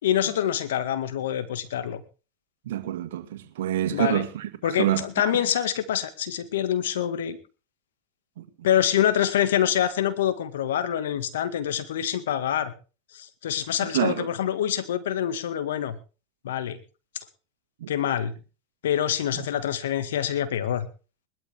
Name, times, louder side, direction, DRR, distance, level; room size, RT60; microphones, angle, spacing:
voice 1, 0.0-2.0 3.9-4.3 4.6-7.4 8.6-12.7 13.1-16.0 16.4-16.8 17.9-18.3 18.8-20.9, left 10 dB, 85° left, 1.9 m, -26 dB
voice 2, 2.7-5.1 5.3-5.4 8.4-8.5 13.8-14.3 17.8-17.9 19.3-19.5, right 13 dB, 80° right, 2.0 m, -27 dB
20.0 x 12.5 x 3.6 m
hypercardioid pair, 110°, 0 cm